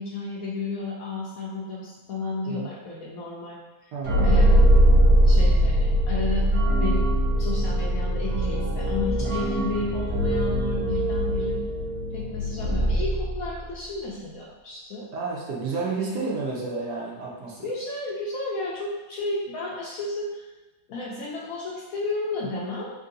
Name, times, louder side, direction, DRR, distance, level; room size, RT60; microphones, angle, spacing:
voice 1, 0.0-3.9 4.2-4.8 5.2-7.1 7.4-11.6 12.1-15.1 15.9-16.3 17.6-20.5 20.9-22.9, left 2 dB, 65° left, -4 dB, 0.9 m, -33 dB
voice 2, 3.9-4.3 9.2-9.5 15.1-17.7, right 4 dB, 70° right, -4 dB, 1.4 m, -31 dB
sound 1, 4.0-13.7, equal, 85° right, 1.5 m, -21 dB
3.7 x 2.7 x 3.8 m, 1.1 s
omnidirectional pair, 2.0 m